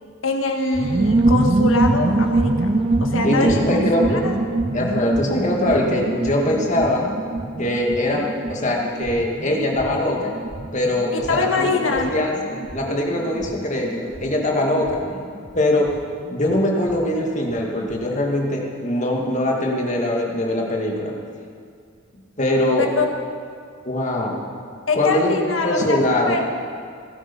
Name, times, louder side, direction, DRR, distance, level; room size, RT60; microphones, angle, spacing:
voice 1, 0.2-4.4 11.3-12.3 22.8-23.1 24.9-26.4, left 3 dB, 75° left, 3 dB, 1.7 m, -24 dB
sound 1, 0.7-17.0 17.3-17.4 17.6-18.0, right 2 dB, 30° right, 0.5 m, -24 dB
voice 2, 3.2-4.2 4.7-7.0 7.6-10.3 10.7-15.3 15.5-15.9 16.3-21.1 22.4-22.9 23.8-24.4 24.9-25.3 25.6-26.4, left 1 dB, 35° left, 0 dB, 2.1 m, -22 dB
18.0 x 11.5 x 5.4 m, 2.2 s
head